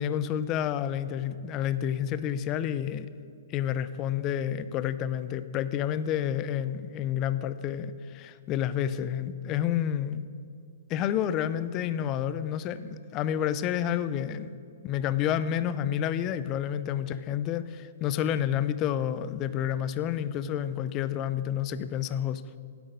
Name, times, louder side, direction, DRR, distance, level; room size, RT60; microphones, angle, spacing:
voice 1, 0.0-3.1 3.5-10.3 10.9-14.5 14.8-22.4, left 10 dB, 25° left, 14 dB, 0.4 m, -29 dB
9.1 x 7.9 x 5.2 m, 2.4 s
hypercardioid pair, 150°, 0 cm